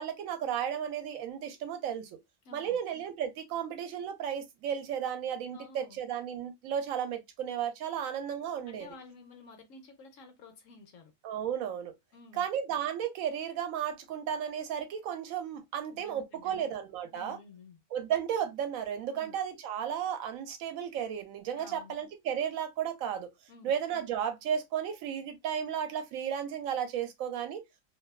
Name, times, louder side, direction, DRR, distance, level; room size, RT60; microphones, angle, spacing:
voice 1, 0.0-2.2 2.5-8.9 11.2-11.9 12.3-17.4 17.9-23.3 23.6-27.6, right 9 dB, 80° right, 1.0 m, -34 dB
voice 2, 2.4-2.8 5.5-6.0 8.6-11.1 12.1-12.5 15.9-16.7 17.1-17.8 19.1-19.4 21.5-22.0 23.5-23.7, left 4 dB, 75° left, 1.1 m, -52 dB
2.8 x 2.2 x 2.2 m
omnidirectional pair, 1.4 m